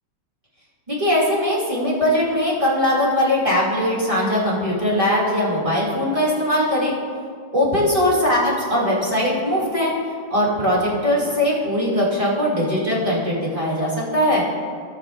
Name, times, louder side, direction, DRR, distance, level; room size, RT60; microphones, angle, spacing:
voice 1, 0.9-6.9 7.5-9.9 10.3-14.4, left 1 dB, 15° right, -6 dB, 2.7 m, -20 dB
18.0 x 7.9 x 2.6 m, 2.1 s
omnidirectional pair, 2.2 m